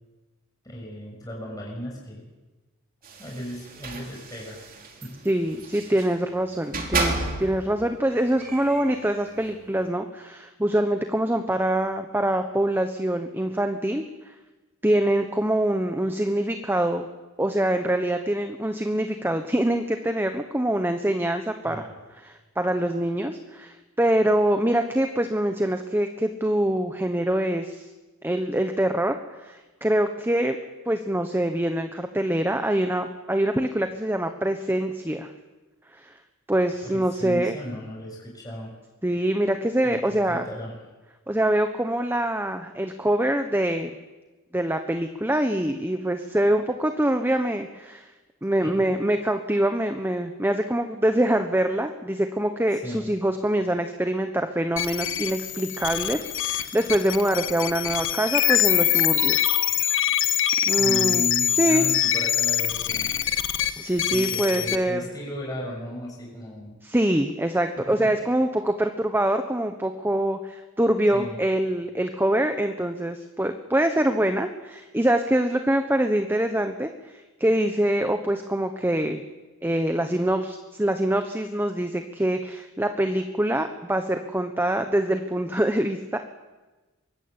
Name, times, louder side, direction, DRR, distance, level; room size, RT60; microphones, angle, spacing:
voice 1, 0.6-2.3 3.2-4.6 5.0-5.2 21.6-21.9 36.8-38.8 39.8-40.8 48.6-48.7 52.8-53.2 60.8-63.2 64.0-66.8 67.8-68.0 71.1-71.4, equal, 15° left, -3 dB, 6.9 m, -36 dB
sound 1, 3.0-6.2 6.6-7.7 8.1-9.5, right 3 dB, 40° right, 3.6 m, -32 dB
voice 2, 5.2-14.0 14.8-17.1 17.4-21.9 22.2-27.9 28.2-30.6 30.9-35.3 35.9-36.1 36.5-37.5 39.0-40.4 41.3-43.9 44.5-48.1 48.4-59.4 60.7-61.3 61.6-61.8 63.8-65.0 66.8-79.2 79.6-86.2, right 1 dB, 10° right, 7 dB, 1.2 m, -24 dB
sound 2, 54.8-64.7, left 11 dB, 60° left, 1.5 m, -24 dB
23.5 x 21.5 x 8.9 m, 1.2 s
head